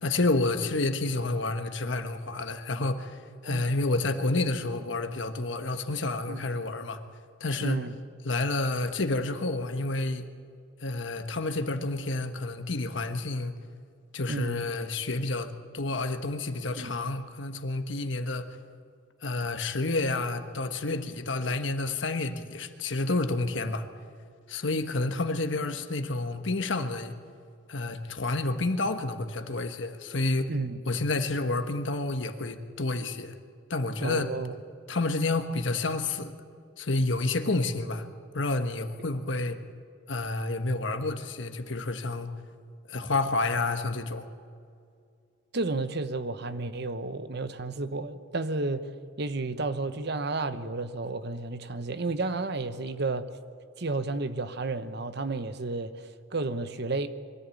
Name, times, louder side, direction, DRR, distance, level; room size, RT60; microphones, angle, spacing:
voice 1, 0.0-7.0 7.4-7.8 8.2-10.2 10.8-13.6 14.1-18.6 19.2-23.9 24.5-27.1 27.7-30.5 30.9-33.3 33.7-34.3 34.9-36.3 36.8-38.1 38.3-39.6 40.1-42.3 42.9-44.3, left 2 dB, 70° left, 1.4 m, -29 dB
voice 2, 3.4-3.8 6.3-6.5 7.6-8.0 14.3-14.6 16.8-16.9 30.5-30.8 34.0-34.5 45.5-48.9 49.2-53.3 53.8-57.1, right 3 dB, 60° right, 1.0 m, -32 dB
23.0 x 14.0 x 8.4 m
head